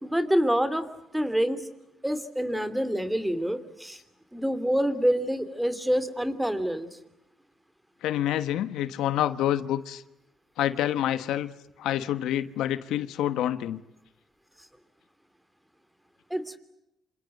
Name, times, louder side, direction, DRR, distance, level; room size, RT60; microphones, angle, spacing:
voice 1, 0.0-0.9 1.1-1.6 2.0-4.0 4.3-7.0 16.3-16.6, equal, 5° right, 2.9 m, -26 dB
voice 2, 8.0-10.0 10.6-13.8, left 12 dB, 85° left, 1.2 m, -27 dB
27.5 x 27.5 x 7.9 m
cardioid pair, 90°, 0 cm